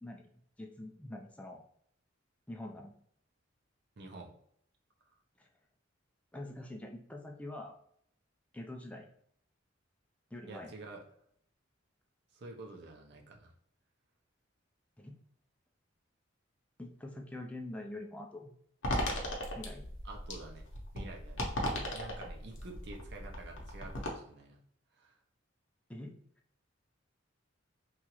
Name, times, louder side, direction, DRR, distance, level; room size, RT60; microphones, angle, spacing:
voice 1, 0.6-1.6 2.5-2.9 5.4-5.5 6.3-7.8 8.5-9.1 10.3-10.7 15.0-15.2 16.8-18.5 19.5-19.9 25.9-26.1, left 1 dB, 5° left, 1 dB, 0.4 m, -45 dB
voice 2, 4.0-4.3 10.5-11.0 12.3-13.5 20.0-20.6 20.9-21.5 21.8-24.6 25.0-25.2, right 2 dB, 60° right, 2 dB, 0.6 m, -48 dB
sound 1, 18.8-24.1, left 1 dB, 70° left, 0.7 m, -37 dB
2.9 x 2.4 x 2.9 m, 0.66 s
head